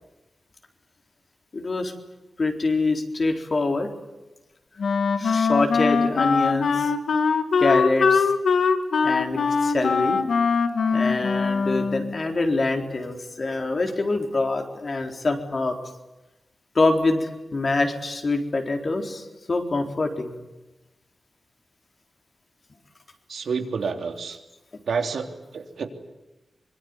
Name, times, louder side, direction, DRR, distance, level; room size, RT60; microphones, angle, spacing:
voice 1, 1.5-1.9 2.4-3.9 5.2-6.9 7.6-8.3 9.0-10.2 10.9-15.7 16.7-20.3, left 3 dB, 40° left, 4 dB, 4.1 m, -25 dB
Wind instrument woodwind instrument, 4.8-12.2, left 5 dB, 80° left, 1.9 m, -22 dB
voice 2, 23.3-24.4 24.8-25.9, right 5 dB, 80° right, 5 dB, 3.4 m, -29 dB
25.5 x 23.5 x 9.8 m, 1.0 s
wide cardioid pair, 125°, 0 cm